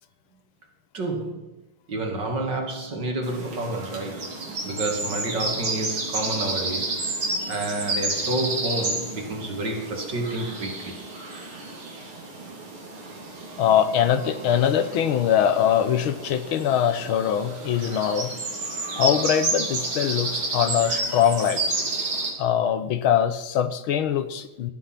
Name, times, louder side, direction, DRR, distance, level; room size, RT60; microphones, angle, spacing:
voice 1, 0.9-1.5 1.9-7.0 7.5-11.0, right 1 dB, 55° right, 2 dB, 3.2 m, -29 dB
sound 1, 3.2-22.3, right 2 dB, 80° right, 3.9 m, -31 dB
voice 2, 13.6-18.3 19.0-21.8 22.4-24.7, left 9 dB, 75° left, 12 dB, 1.7 m, -22 dB
18.0 x 11.5 x 5.9 m, 1.0 s
omnidirectional pair, 2.3 m